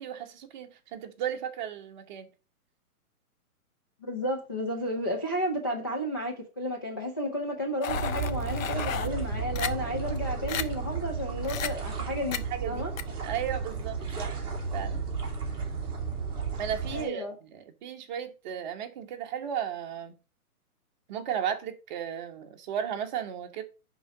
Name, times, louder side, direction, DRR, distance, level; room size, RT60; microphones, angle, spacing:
voice 1, 0.0-2.3 12.3-12.8 13.2-14.4 14.7-15.0 16.6-17.2 17.5-20.1 21.1-23.6, right 9 dB, 30° right, 1.2 m, -35 dB
voice 2, 4.1-12.4 12.6-12.9 16.9-17.3, equal, 15° left, 0.4 m, -32 dB
sound 1, 7.8-9.1 9.6-9.7 10.2-10.3 10.5-10.6 11.4-11.7 12.3-12.4 13.0-13.1, left 9 dB, 60° left, 1.0 m, -32 dB
sound 2, 7.9-17.0, right 4 dB, 10° right, 2.3 m, -33 dB
9.9 x 4.0 x 5.9 m
hypercardioid pair, 150°, 45 cm